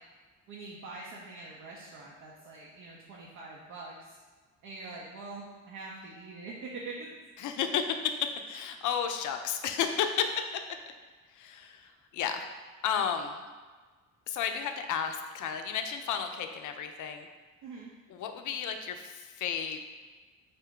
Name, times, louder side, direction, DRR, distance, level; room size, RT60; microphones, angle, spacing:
voice 1, 0.5-4.2 4.6-7.1 17.6-17.9, right 3 dB, 60° right, -4 dB, 0.7 m, -44 dB
voice 2, 7.4-8.1 8.5-10.3 11.3-12.5 12.8-13.4 14.3-17.3 18.1-19.8, left 7 dB, 55° left, 7 dB, 0.5 m, -32 dB
3.9 x 2.2 x 3.6 m, 1.4 s
hypercardioid pair, 55°, 38 cm